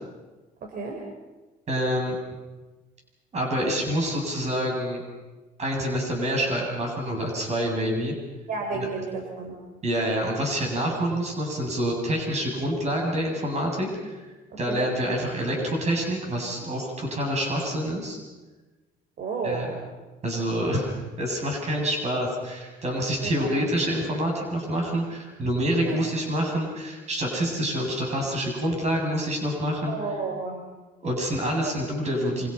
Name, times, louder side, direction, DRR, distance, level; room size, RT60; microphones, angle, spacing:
voice 1, 0.6-1.0 8.5-9.6 14.7-14.9 19.2-19.8 23.2-23.6 25.8-26.1 29.9-30.6, right 4 dB, 60° right, 2 dB, 4.9 m, -32 dB
voice 2, 1.7-2.2 3.3-5.0 5.6-8.1 8.7-8.9 9.8-14.2 14.6-18.2 19.4-19.7 20.2-20.9 21.2-29.9 31.0-32.5, equal, 40° right, 1 dB, 7.9 m, -27 dB
28.0 x 26.0 x 5.8 m, 1.2 s
cardioid pair, 110°, 17 cm